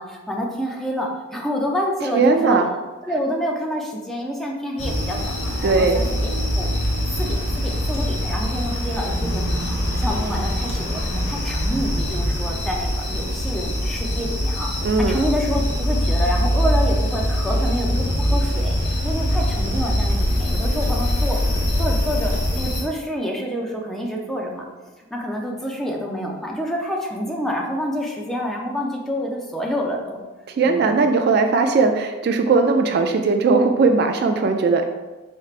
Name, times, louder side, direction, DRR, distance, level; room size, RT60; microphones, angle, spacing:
voice 1, 0.0-2.6 3.0-6.7 7.2-14.7 15.1-30.2 30.6-31.1, equal, ahead, -2 dB, 0.5 m, -28 dB
voice 2, 2.1-2.7 5.6-6.0 14.8-15.2 30.5-34.8, right 4 dB, 50° right, 6 dB, 0.3 m, -18 dB
sound 1, 4.8-22.8, equal, 55° left, 1.0 m, -23 dB
4.5 x 4.4 x 2.4 m, 1.2 s
head